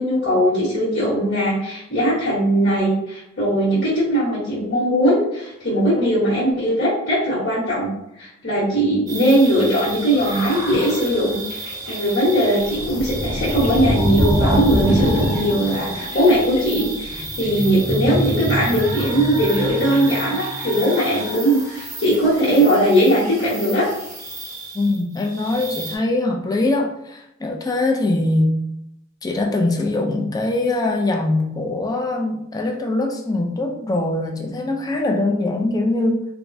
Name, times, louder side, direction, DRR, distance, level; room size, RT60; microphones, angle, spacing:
voice 1, 0.0-7.9 8.2-11.4 11.8-23.9, equal, 55° left, -9 dB, 1.1 m, -19 dB
sound 1, 9.1-26.0, equal, 15° right, 0.7 m, -26 dB
voice 2, 24.7-28.6 29.2-36.3, left 2 dB, 20° left, 2 dB, 0.3 m, -22 dB
3.4 x 2.1 x 2.5 m, 0.82 s
head